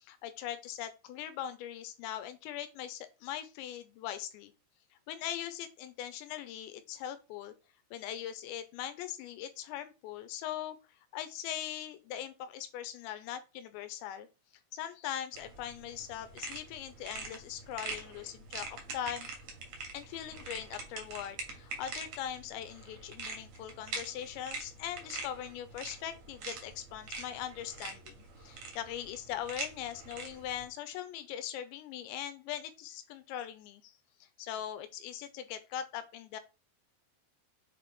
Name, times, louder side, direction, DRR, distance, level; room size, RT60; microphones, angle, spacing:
voice 1, 0.0-4.5 5.1-7.5 7.9-10.8 11.1-14.3 14.7-19.3 19.9-34.0 34.4-36.4, left 10 dB, 90° left, 10 dB, 3.0 m, -41 dB
sound 1, 15.3-30.7, right 3 dB, 55° right, 1.6 m, -44 dB
7.4 x 3.6 x 4.2 m, 0.29 s
omnidirectional pair, 5.2 m